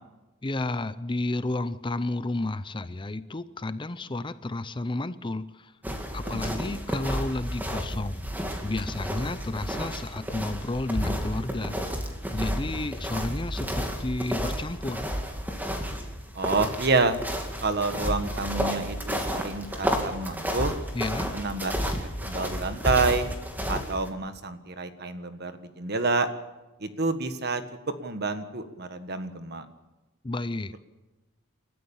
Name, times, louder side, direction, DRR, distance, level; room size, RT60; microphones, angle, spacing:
voice 1, 0.4-5.7 6.1-8.3 8.6-15.1 20.9-21.3 30.2-30.7, left 2 dB, 25° left, 13 dB, 0.6 m, -32 dB
sound 1, 5.8-24.1, equal, 10° right, 2.3 m, -31 dB
voice 2, 6.2-6.7 16.3-17.2 17.6-20.7 21.3-21.9 22.2-23.3 23.7-26.3 26.8-27.6 28.0-29.6, right 3 dB, 50° right, 9 dB, 1.6 m, -28 dB
29.5 x 13.0 x 7.2 m, 1.1 s
head